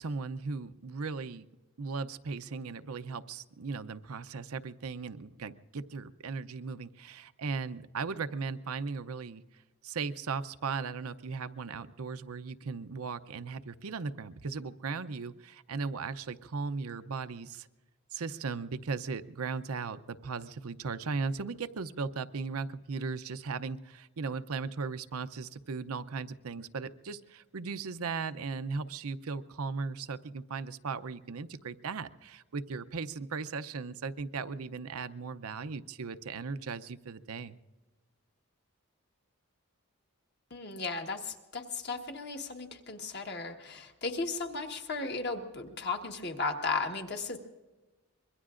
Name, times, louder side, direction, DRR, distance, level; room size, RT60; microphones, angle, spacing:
voice 1, 0.0-1.5 1.8-9.4 9.8-17.7 18.1-37.6, right 4 dB, 80° right, 11 dB, 0.6 m, -37 dB
voice 2, 40.5-47.4, left 3 dB, 50° left, 3 dB, 1.4 m, -35 dB
25.5 x 22.5 x 2.5 m, 1.2 s
head